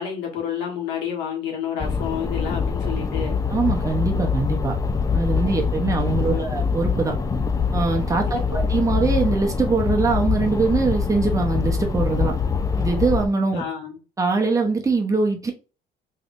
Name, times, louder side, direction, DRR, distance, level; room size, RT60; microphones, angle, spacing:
voice 1, 0.0-3.4 6.2-6.4 8.3-8.4 13.5-14.0, left 8 dB, 85° left, 1.4 m, -29 dB
sound 1, 1.8-13.3, left 5 dB, 20° left, 0.4 m, -24 dB
voice 2, 3.5-4.7 5.1-7.1 7.7-12.3 12.8-13.6 14.2-15.5, right 3 dB, 20° right, 0.8 m, -22 dB
3.3 x 3.2 x 2.6 m
cardioid pair, 110°, 17 cm